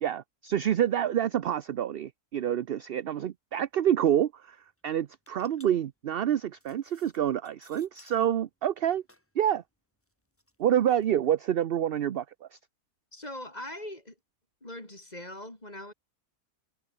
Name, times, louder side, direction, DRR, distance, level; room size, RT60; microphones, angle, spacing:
voice 1, 0.0-4.6 4.8-9.0 9.4-9.6 10.6-12.6, right 10 dB, 55° right, 0.7 m, -27 dB
sound 1, 3.5-3.6 3.8-4.2 4.7-8.3 8.6-11.3, left 1 dB, 10° left, 2.7 m, -61 dB
voice 2, 13.1-14.2 14.6-15.9, left 1 dB, 30° left, 4.5 m, -41 dB
omnidirectional pair, 1.5 m